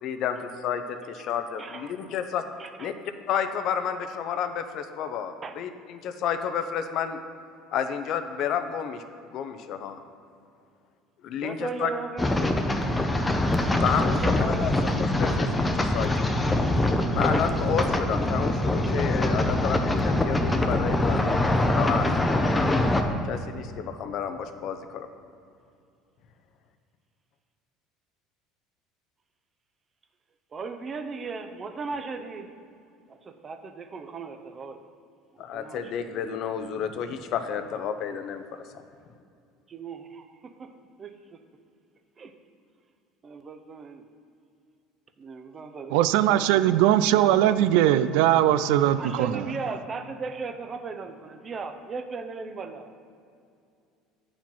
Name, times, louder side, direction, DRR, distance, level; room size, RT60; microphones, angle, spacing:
voice 1, 0.0-2.5 2.8-2.9 3.3-7.2 7.7-9.0 9.3-10.0 11.2-11.9 13.8-16.3 17.1-22.7 23.2-25.1 35.4-38.8, left 8 dB, 55° left, 0.6 m, -31 dB
voice 2, 1.6-2.1 2.6-2.9 5.4-5.6 11.3-12.3 14.1-14.7 30.5-32.5 33.1-34.9 35.3-36.3 39.7-40.7 41.0-41.4 42.2-42.3 43.2-44.1 45.2-47.7 49.0-52.9, right 4 dB, 30° right, 0.6 m, -37 dB
sound 1, 12.2-23.0, left 1 dB, 10° left, 0.6 m, -24 dB
voice 3, 45.9-49.5, right 12 dB, 80° right, 0.3 m, -20 dB
9.0 x 5.0 x 5.5 m
cardioid pair, 125°, 0 cm